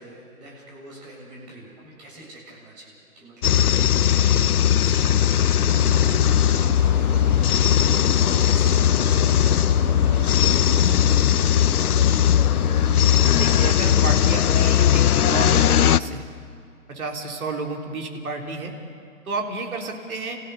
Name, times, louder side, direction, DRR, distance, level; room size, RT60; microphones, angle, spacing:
voice 1, 0.0-8.9 9.4-11.9, right 1 dB, 30° right, -4 dB, 7.8 m, -46 dB
sound 1, 3.4-16.0, left 10 dB, 80° left, 0.7 m, -18 dB
sound 2, 5.6-13.6, right 7 dB, 55° right, 1.2 m, -36 dB
voice 2, 13.4-16.2 16.9-18.7 19.3-20.4, right 3 dB, 70° right, 1 dB, 3.8 m, -31 dB
29.5 x 16.0 x 7.0 m, 2.4 s
hypercardioid pair, 170°, 44 cm